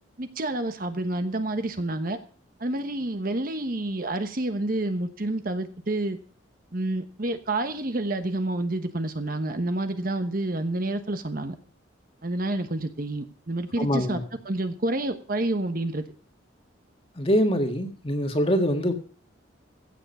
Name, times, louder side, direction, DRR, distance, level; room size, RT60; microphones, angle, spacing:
voice 1, 0.2-2.2 2.6-6.2 6.7-11.6 12.2-14.2 14.4-16.0, right 2 dB, 45° right, 1.1 m, -29 dB
voice 2, 13.8-14.2 17.2-18.9, equal, 30° left, 1.8 m, -24 dB
15.5 x 7.2 x 5.6 m
head